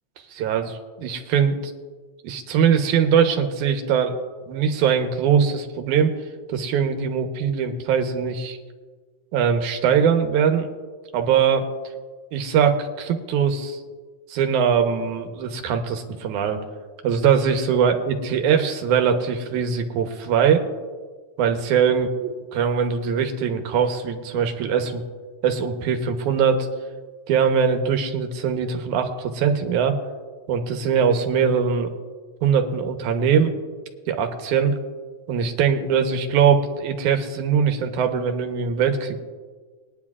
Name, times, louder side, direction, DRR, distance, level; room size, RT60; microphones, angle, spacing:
voice 1, 0.3-1.6 2.2-4.2 4.5-6.1 6.5-8.6 9.3-10.7 11.1-11.7 12.3-13.8 14.3-16.6 17.0-20.6 21.4-22.3 22.6-25.0 25.4-26.7 27.3-30.0 30.5-31.9 32.4-33.5 34.1-34.8 35.3-39.2, right 7 dB, 85° right, 5 dB, 2.4 m, -21 dB
21.5 x 10.0 x 2.4 m, 1.4 s
omnidirectional pair, 3.4 m